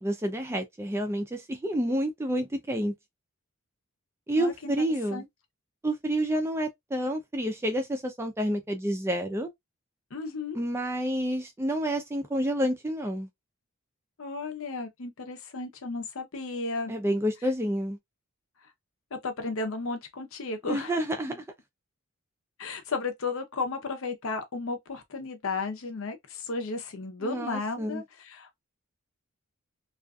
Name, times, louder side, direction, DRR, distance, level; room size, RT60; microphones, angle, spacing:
voice 1, 0.0-2.9 4.3-5.2 5.8-9.5 10.5-13.3 16.9-18.0 20.7-21.4 27.2-28.0, equal, 10° right, 0.3 m, -29 dB
voice 2, 4.4-4.7 5.1-5.3 10.1-10.6 14.2-16.9 19.1-20.9 21.3-21.4 22.6-28.6, left 3 dB, 70° left, 0.7 m, -34 dB
2.5 x 2.4 x 2.3 m
head